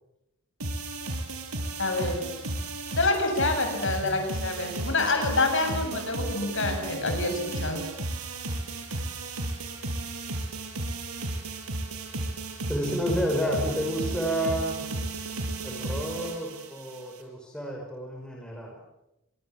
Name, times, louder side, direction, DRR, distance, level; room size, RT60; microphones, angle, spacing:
sound 1, 0.6-17.2, right 2 dB, 90° right, 5.9 m, -34 dB
voice 1, 1.8-2.6 3.0-7.8, left 2 dB, 60° left, 5 dB, 7.6 m, -27 dB
voice 2, 12.7-14.8 15.6-18.8, equal, 5° left, -1 dB, 5.4 m, -30 dB
27.0 x 24.0 x 7.3 m, 0.88 s
head